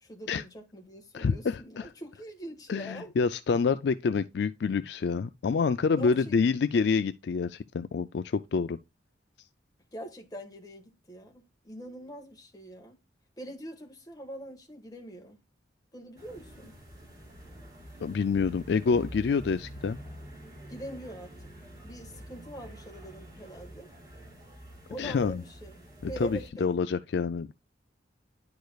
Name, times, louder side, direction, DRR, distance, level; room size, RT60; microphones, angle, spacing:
voice 1, 0.0-3.1 6.0-6.3 9.9-13.0 13.4-15.4 15.9-16.8 20.7-21.3 21.8-23.9 24.9-25.8 26.1-26.7, right 1 dB, 20° left, 1.4 m, -43 dB
voice 2, 1.1-1.9 2.7-8.8 18.0-20.0 25.0-25.4 26.0-27.5, left 5 dB, 60° left, 0.3 m, -27 dB
sound 1, 16.2-26.5, equal, 20° right, 2.4 m, -47 dB
10.5 x 4.8 x 2.3 m
head